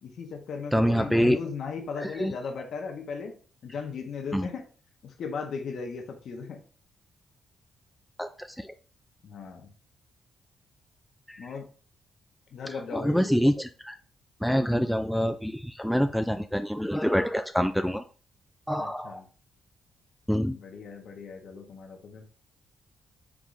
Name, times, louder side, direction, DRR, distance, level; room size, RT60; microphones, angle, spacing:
voice 1, 0.0-3.3 3.6-4.7 5.0-6.6 9.2-9.7 11.4-11.7 12.5-13.3 18.8-19.3 20.5-22.3, left 5 dB, 70° left, 3 dB, 1.0 m, -37 dB
voice 2, 0.7-1.4 2.0-2.3 4.3-4.5 8.2-8.3 12.9-13.9 14.4-18.0 18.7-19.2 20.3-20.6, equal, ahead, 7 dB, 0.3 m, -25 dB
4.8 x 3.6 x 2.6 m, 0.40 s
cardioid pair, 75°, 0 cm